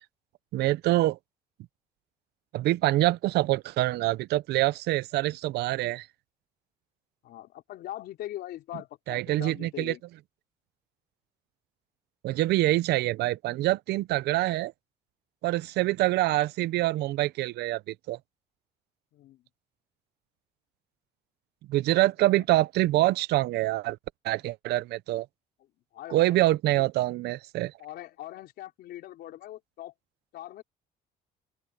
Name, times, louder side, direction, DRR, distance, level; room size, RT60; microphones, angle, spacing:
voice 1, 0.5-1.2 2.5-6.1 9.1-9.9 12.2-14.7 15.4-18.2 21.7-24.0 24.2-25.3 26.1-27.7, right 17 dB, 80° right, 0.7 m, -25 dB
voice 2, 7.2-10.0 19.1-19.4 22.3-22.4 25.9-26.9 27.8-29.9 30.3-30.6, left 14 dB, 75° left, 4.1 m, -42 dB
open air
cardioid pair, 110°, 17 cm